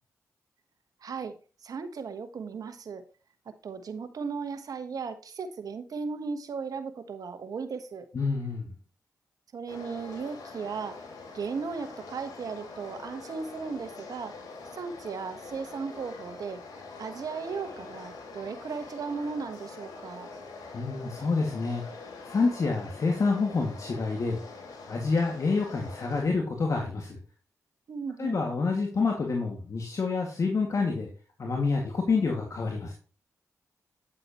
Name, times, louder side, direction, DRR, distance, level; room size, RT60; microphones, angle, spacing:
voice 1, 1.0-1.4 1.6-3.0 3.4-8.1 9.5-11.1 11.3-14.4 14.7-20.3 27.9-28.4, right 5 dB, 65° right, 9 dB, 1.2 m, -36 dB
voice 2, 8.1-8.7 20.7-21.8 22.2-24.4 24.9-27.2 28.2-31.1 31.4-32.9, left 4 dB, 55° left, 1 dB, 2.1 m, -28 dB
sound 1, 9.7-26.2, left 3 dB, 80° left, 3.1 m, -44 dB
9.6 x 7.6 x 3.0 m, 0.36 s
supercardioid pair, 50°, 7 cm